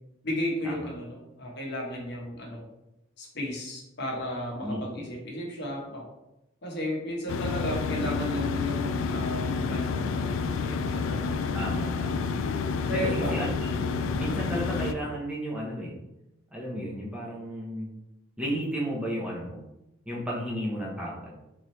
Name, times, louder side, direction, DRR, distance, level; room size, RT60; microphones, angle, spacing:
voice 1, 0.2-2.6 3.2-6.1 6.6-11.6 12.9-13.3 14.3-14.7, equal, 60° left, -2 dB, 1.0 m, -34 dB
sound 1, 7.3-14.9, left 4 dB, 80° left, 0.3 m, -29 dB
voice 2, 11.5-12.2 12.9-13.0 13.3-13.8 14.1-15.9 16.5-17.9 18.4-19.6 20.1-21.4, equal, 5° right, -5 dB, 0.8 m, -33 dB
3.9 x 3.1 x 3.1 m, 0.92 s
head